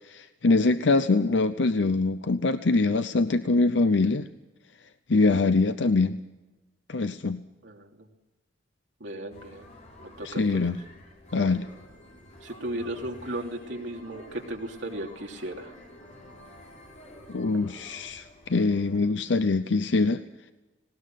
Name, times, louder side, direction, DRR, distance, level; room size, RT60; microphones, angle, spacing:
voice 1, 0.2-4.3 5.1-6.2 6.9-7.4 10.2-10.8 11.3-11.7 17.3-20.2, left 3 dB, 65° left, 11 dB, 0.7 m, -23 dB
voice 2, 7.6-8.1 9.0-9.7 10.0-10.6 12.4-15.8, right 1 dB, 75° right, 1 dB, 2.9 m, -36 dB
sound 1, 9.3-19.1, left 1 dB, 40° left, 4.8 m, -49 dB
19.0 x 18.5 x 7.6 m, 1.1 s
head